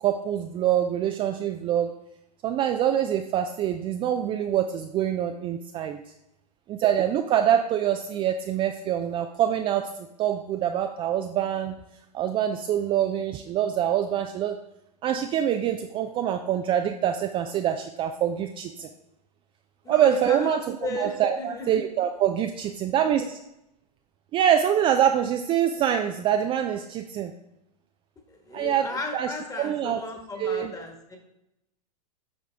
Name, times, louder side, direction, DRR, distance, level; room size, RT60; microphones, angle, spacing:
voice 1, 0.0-1.9 2.4-6.0 6.7-9.9 10.2-11.8 12.1-14.6 15.0-18.9 19.9-23.2 24.3-27.3 28.5-28.9 29.1-30.0 30.4-30.7, right 10 dB, 25° right, 6 dB, 0.4 m, -25 dB
voice 2, 19.8-21.8 28.3-31.2, left 2 dB, 15° left, 3 dB, 1.5 m, -35 dB
8.7 x 5.1 x 3.4 m, 0.85 s
hypercardioid pair, 105°, 21 cm